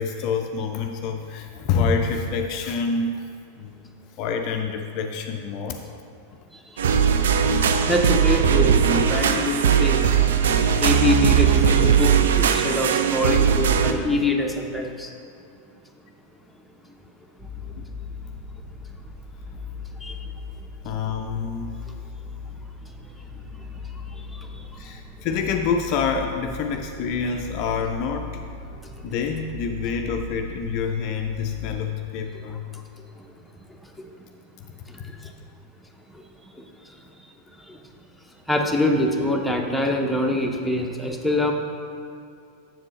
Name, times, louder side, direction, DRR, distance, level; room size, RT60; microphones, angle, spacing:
voice 1, 0.0-3.2 3.6-3.8 4.2-5.8 6.9-7.0 17.8-17.9 20.8-21.8 24.8-28.4 29.0-32.6 35.0-35.1, left 5 dB, 40° left, 4 dB, 0.4 m, -27 dB
voice 2, 6.5-6.9 7.9-10.1 10.8-15.1 20.0-20.3 20.9-21.0 23.9-24.8 28.8-28.9 32.7-32.8 33.6-33.9 34.9-35.3 36.1-36.2 36.6-37.3 37.6-37.8 38.5-41.5, left 1 dB, ahead, 1 dB, 0.7 m, -25 dB
sound 1, 6.8-13.9, right 7 dB, 60° right, 0.4 m, -19 dB
sound 2, 17.4-31.8, left 4 dB, 25° right, 1.3 m, -38 dB
7.4 x 7.2 x 3.1 m, 2.5 s
figure-of-eight pair, 90°, 0 cm